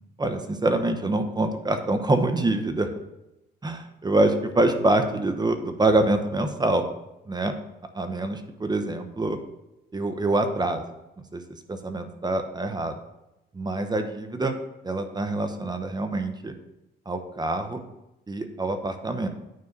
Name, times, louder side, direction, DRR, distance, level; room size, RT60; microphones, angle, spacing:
voice 1, 0.2-2.9 3.6-6.9 7.3-7.5 7.9-9.4 9.9-10.8 11.3-11.4 11.7-13.0 13.5-14.5 14.8-16.5 17.1-17.8 18.3-19.3, right 2 dB, 20° right, 7 dB, 0.9 m, -25 dB
9.4 x 4.7 x 5.4 m, 0.93 s
cardioid pair, 90°, 20 cm